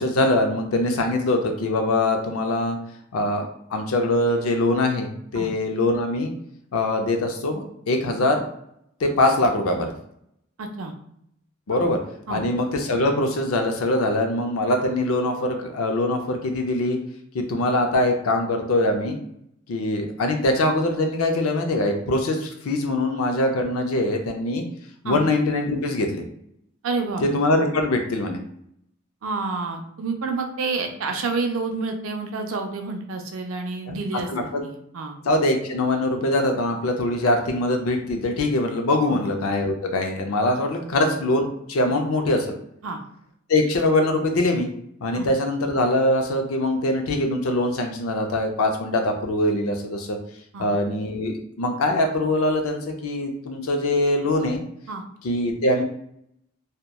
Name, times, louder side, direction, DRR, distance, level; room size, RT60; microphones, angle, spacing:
voice 1, 0.0-2.8 3.1-6.3 6.7-8.4 9.0-9.9 11.7-12.0 12.3-17.0 17.3-19.2 19.7-24.6 25.0-26.2 27.2-28.4 33.9-34.0 34.3-34.6 35.3-42.5 43.5-44.7 45.0-50.2 50.6-54.6 55.2-55.8, left 1 dB, 90° left, 4 dB, 0.5 m, -23 dB
voice 2, 10.6-10.9 12.3-12.4 25.0-25.2 26.8-27.3 29.2-35.2 39.1-39.3 42.8-43.0 45.1-45.3 50.5-50.7 54.9-55.0, right 4 dB, 70° right, 4 dB, 0.4 m, -29 dB
2.8 x 2.1 x 2.2 m, 0.72 s
head